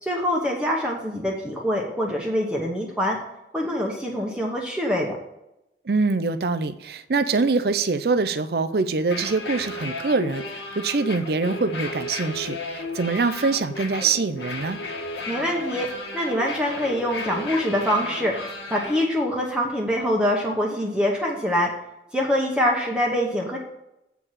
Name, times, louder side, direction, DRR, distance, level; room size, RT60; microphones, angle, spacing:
voice 1, 0.0-3.2 3.5-5.2 15.3-15.9 16.1-18.4 18.7-21.7 22.1-23.6, equal, 5° right, -2 dB, 1.0 m, -24 dB
voice 2, 5.9-14.8, right 4 dB, 60° right, 12 dB, 0.5 m, -24 dB
sound 1, 9.0-19.0, left 2 dB, 80° left, 1.5 m, -34 dB
8.2 x 4.6 x 7.4 m, 0.87 s
head